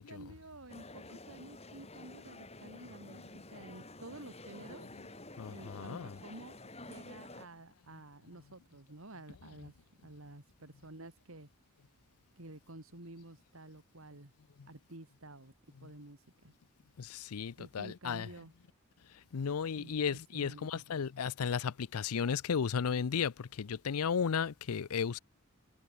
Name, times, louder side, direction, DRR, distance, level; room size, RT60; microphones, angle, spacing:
voice 1, 0.0-3.2 3.5-4.9 5.4-6.5 6.8-9.7 10.0-11.5 12.4-14.3 14.7-15.5 15.8-16.2 16.4-16.5 17.6-18.5 19.8-20.8, right 2 dB, 65° right, 2.7 m, -51 dB
sound 1, 0.7-7.5, left 2 dB, 30° left, 6.0 m, -50 dB
voice 2, 5.4-6.2 17.0-18.3 19.3-25.2, left 6 dB, 80° left, 0.5 m, -34 dB
head